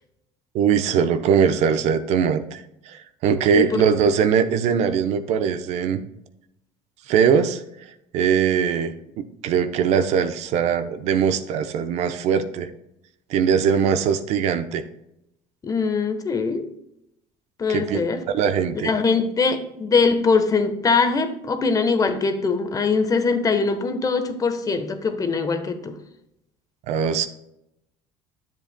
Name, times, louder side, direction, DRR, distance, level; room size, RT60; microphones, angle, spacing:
voice 1, 0.5-6.0 7.1-12.7 13.3-14.8 17.7-18.1 18.3-18.9 26.9-27.3, right 7 dB, 70° right, 10 dB, 0.7 m, -21 dB
voice 2, 15.6-16.7 17.6-18.2 18.8-26.0, left 4 dB, 30° left, 7 dB, 1.1 m, -22 dB
10.5 x 7.5 x 2.2 m, 0.82 s
supercardioid pair, 95°, 12 cm